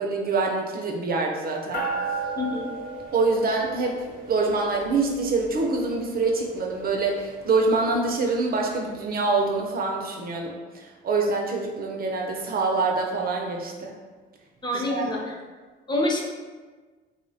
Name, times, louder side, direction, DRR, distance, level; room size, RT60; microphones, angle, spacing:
voice 1, 0.0-1.8 3.1-13.9 14.7-15.3, right 3 dB, 45° right, 1 dB, 0.4 m, -25 dB
sound 1, 1.7-9.4, right 3 dB, 45° left, 0.8 m, -37 dB
voice 2, 14.6-15.3 15.9-16.2, left 2 dB, 20° left, -2 dB, 0.5 m, -26 dB
2.5 x 2.0 x 2.6 m, 1.4 s
supercardioid pair, 65°, 21 cm